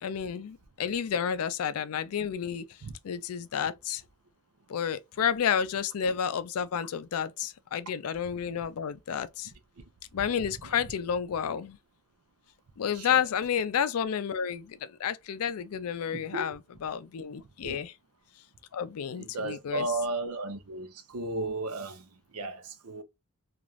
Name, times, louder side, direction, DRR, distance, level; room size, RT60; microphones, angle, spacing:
voice 1, 0.0-2.6 3.0-4.0 4.7-9.5 10.1-11.8 12.8-17.9 18.7-19.9, left 8 dB, 75° left, 0.4 m, -31 dB
voice 2, 12.9-13.3 16.1-16.5 17.6-17.8 19.1-23.0, right 2 dB, 80° right, 0.6 m, -35 dB
3.0 x 2.5 x 2.3 m
head